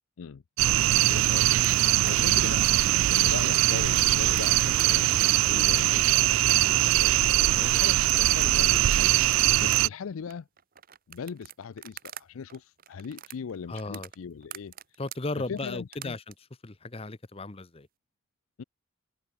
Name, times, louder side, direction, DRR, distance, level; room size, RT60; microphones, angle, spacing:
sound 1, 0.6-9.9, right 15 dB, 80° right, 0.3 m, -22 dB
voice 1, 1.0-2.7 3.1-10.5 11.1-14.7 15.5-16.2 18.6-18.7, left 6 dB, 90° left, 0.4 m, -39 dB
sound 2, 1.6-12.2 12.5-16.3, right 11 dB, 45° right, 1.1 m, -45 dB
Water / Sink (filling or washing), 5.1-10.1, left 2 dB, 5° left, 4.3 m, -62 dB
voice 2, 13.7-14.1 15.0-16.3 16.6-17.9, left 2 dB, 30° left, 0.9 m, -36 dB
head